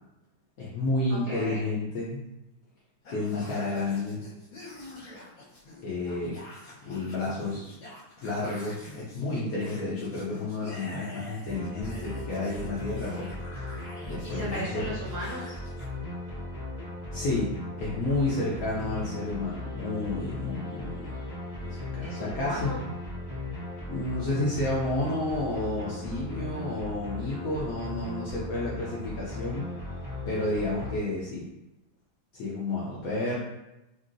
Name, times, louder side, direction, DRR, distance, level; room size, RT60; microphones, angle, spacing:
voice 1, 0.6-2.2 3.1-4.2 5.8-6.4 6.8-7.7 8.2-13.3 14.1-14.8 17.1-17.5 17.8-21.2 21.7-22.8 23.9-29.7 30.3-31.4 32.3-33.4, left 2 dB, 80° left, -6 dB, 0.8 m, -31 dB
voice 2, 1.1-1.6 14.2-15.6 22.0-22.8 33.2-33.3, right 1 dB, 60° right, -10 dB, 0.5 m, -36 dB
sound 1, 3.0-15.9, left 2 dB, 55° left, 1.1 m, -47 dB
sound 2, 11.4-31.0, left 2 dB, 35° left, 0.4 m, -37 dB
3.0 x 2.7 x 2.5 m, 0.92 s
omnidirectional pair, 2.2 m